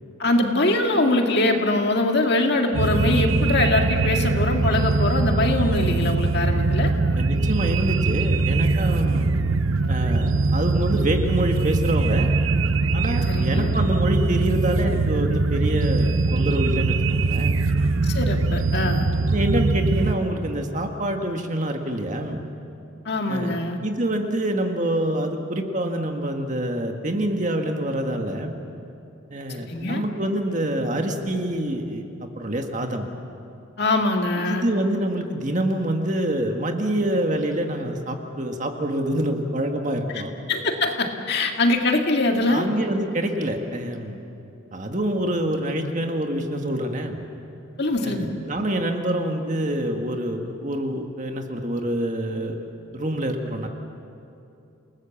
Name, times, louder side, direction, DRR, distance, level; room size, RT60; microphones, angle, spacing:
voice 1, 0.2-6.9 13.3-13.7 18.0-19.1 23.1-23.8 29.7-30.0 33.8-34.7 40.5-42.7 47.8-48.3, left 2 dB, 55° left, 3 dB, 2.1 m, -23 dB
sound 1, 2.7-20.1, right 3 dB, 85° right, 0.9 m, -22 dB
voice 2, 7.2-9.3 9.9-12.3 12.9-17.6 18.7-18.9 19.3-22.4 23.3-28.6 29.3-33.1 34.5-40.4 42.5-44.2 44.7-47.2 48.0-52.7 52.9-53.7, right 1 dB, 40° right, 4 dB, 1.8 m, -26 dB
28.5 x 19.0 x 7.2 m, 2.7 s
head